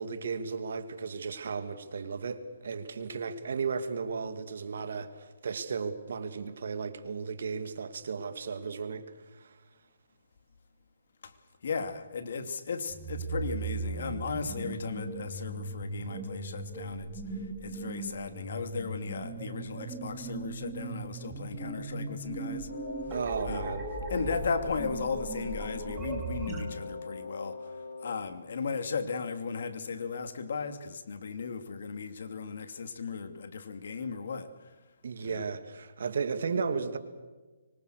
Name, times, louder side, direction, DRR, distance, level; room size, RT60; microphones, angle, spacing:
voice 1, 0.0-9.1 9.4-9.5 23.1-24.4 35.0-37.0, right 5 dB, 65° right, 2.6 m, -35 dB
voice 2, 11.6-22.7 23.4-23.7 24.1-27.7 28.0-34.5 35.2-35.4, left 5 dB, 60° left, 2.8 m, -36 dB
sound 1, 12.9-26.6, right 3 dB, 10° right, 3.1 m, -38 dB
Wind instrument woodwind instrument, 22.7-28.4, left 4 dB, 75° left, 4.6 m, -41 dB
25.0 x 24.5 x 6.6 m
hypercardioid pair, 160°, 0 cm